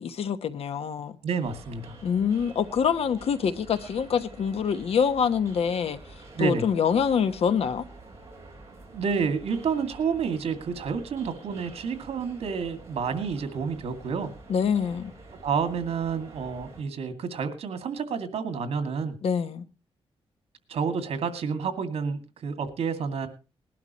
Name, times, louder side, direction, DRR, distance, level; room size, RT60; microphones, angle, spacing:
voice 1, 0.0-1.2 2.0-6.0 6.4-7.8 14.5-15.1 19.2-19.6, left 7 dB, 75° left, 1.2 m, -25 dB
voice 2, 1.2-2.0 6.4-6.7 8.9-14.3 15.4-19.2 20.7-23.3, right 6 dB, 80° right, 2.4 m, -29 dB
sound 1, 1.4-16.8, right 2 dB, 25° right, 5.1 m, -48 dB
20.0 x 12.0 x 3.0 m
wide cardioid pair, 140°, 10 cm